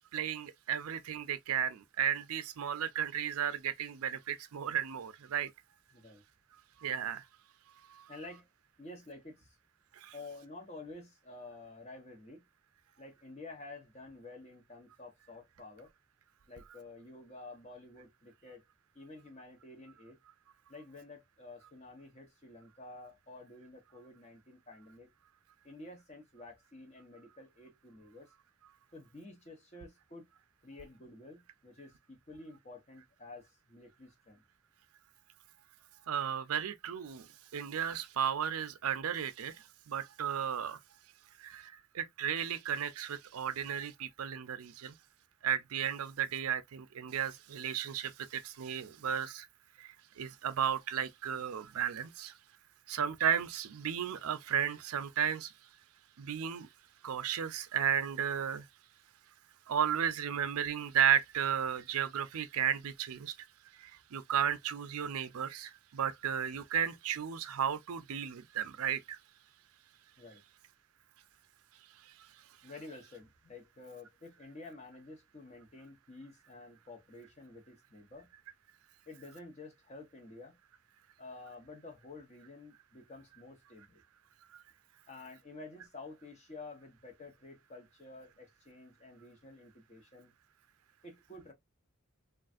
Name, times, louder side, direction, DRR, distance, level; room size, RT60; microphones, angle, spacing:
voice 1, 0.1-5.5 6.8-7.2 7.9-8.0 10.0-10.1 36.1-37.3 37.5-39.5 39.9-40.8 41.4-44.9 45.4-49.5 49.8-52.3 52.9-55.5 56.2-56.7 57.0-58.6 59.7-63.3 63.8-69.2 84.5-84.6, right 8 dB, 75° right, 0.5 m, -34 dB
voice 2, 5.9-6.2 8.1-8.5 8.8-9.6 10.1-12.4 13.0-15.9 16.5-18.6 18.9-20.2 20.7-25.1 25.6-28.3 28.9-30.3 30.6-34.4 70.2-70.4 72.6-78.3 79.1-80.6 81.2-84.0 85.1-90.3 91.0-91.5, left 2 dB, 30° left, 0.9 m, -50 dB
3.2 x 2.4 x 2.5 m
head